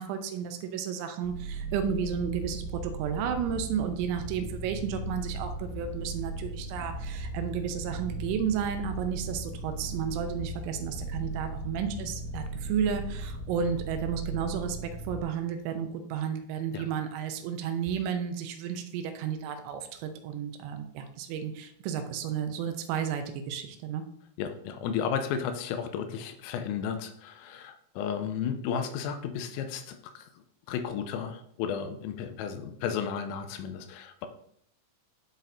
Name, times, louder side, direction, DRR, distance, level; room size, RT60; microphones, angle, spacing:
voice 1, 0.0-14.8 15.0-24.0, right 7 dB, 90° right, 6 dB, 3.3 m, -32 dB
sound 1, 1.2-15.2, right 2 dB, 75° right, 4.2 m, -37 dB
voice 2, 24.4-34.3, left 7 dB, 90° left, 8 dB, 3.2 m, -33 dB
12.0 x 4.1 x 2.7 m, 0.68 s
omnidirectional pair, 5.9 m